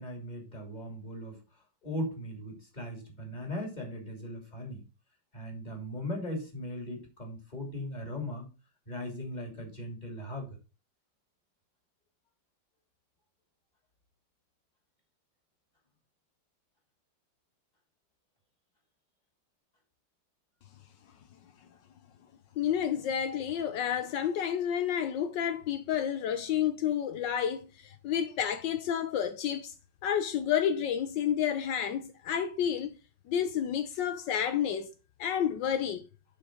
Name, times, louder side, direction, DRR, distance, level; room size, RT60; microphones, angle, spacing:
voice 1, 0.0-1.4 1.8-4.8 5.3-8.5 8.9-10.5, left 1 dB, 20° left, 2.9 m, -38 dB
voice 2, 22.6-29.7 30.0-33.0 33.3-34.9 35.2-36.1, left 9 dB, 75° left, 1.4 m, -30 dB
7.8 x 6.3 x 5.0 m
omnidirectional pair, 2.0 m